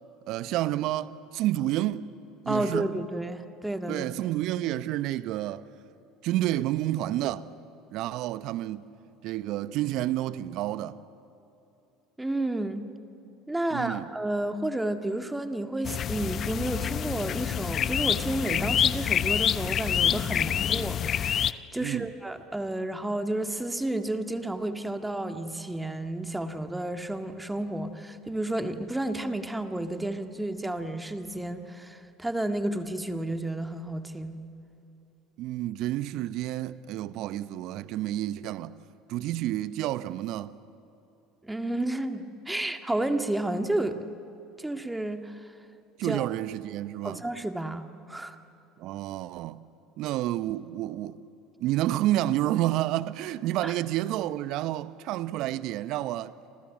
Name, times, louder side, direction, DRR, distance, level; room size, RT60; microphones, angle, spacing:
voice 1, 0.3-2.1 2.4-2.9 3.9-5.6 6.2-7.4 7.9-8.9 9.2-11.0 13.7-14.1 21.8-22.1 35.4-38.8 39.1-40.6 46.0-47.2 48.8-49.6 50.0-51.2 51.6-56.3, right 14 dB, 60° right, 0.9 m, -29 dB
voice 2, 2.5-4.1 12.2-12.8 13.5-34.4 41.4-44.1 44.6-45.5 46.0-46.3 47.0-48.4 53.6-53.7, right 1 dB, 10° right, 1.9 m, -31 dB
sound 1, 15.8-21.5, left 9 dB, 45° left, 0.8 m, -27 dB
29.5 x 26.5 x 7.4 m
hypercardioid pair, 70°, 0 cm